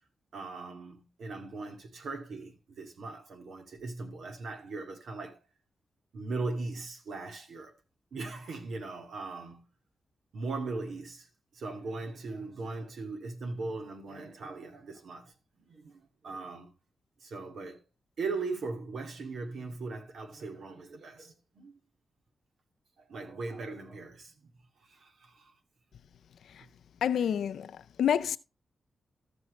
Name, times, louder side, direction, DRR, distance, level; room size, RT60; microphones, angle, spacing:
voice 1, 0.3-5.4 6.1-7.7 8.1-9.6 10.3-16.7 17.2-17.8 18.2-21.7 23.0-24.5 24.9-25.5 26.6-26.7, right 3 dB, 80° right, 2.2 m, -39 dB
voice 2, 27.0-27.7 28.0-28.4, left 9 dB, 85° left, 0.5 m, -27 dB
14.5 x 6.2 x 3.2 m
cardioid pair, 60°, 0 cm